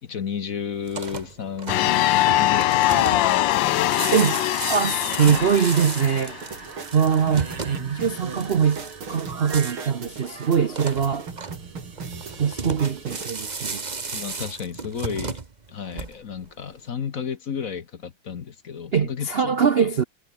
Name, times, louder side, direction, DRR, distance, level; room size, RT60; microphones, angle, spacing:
voice 1, 0.0-4.1 14.1-15.4 15.7-19.9, left 7 dB, 50° left, 1.4 m, -33 dB
sound 1, 0.8-16.5, right 4 dB, 25° right, 1.2 m, -35 dB
sound 2, 1.7-6.4, left 14 dB, 70° left, 1.3 m, -22 dB
voice 2, 4.7-6.4 6.9-11.3 12.4-13.8 18.9-20.0, right 7 dB, 55° right, 0.6 m, -22 dB
sound 3, 5.3-13.3, right 5 dB, 85° right, 4.1 m, -37 dB
omnidirectional pair, 2.2 m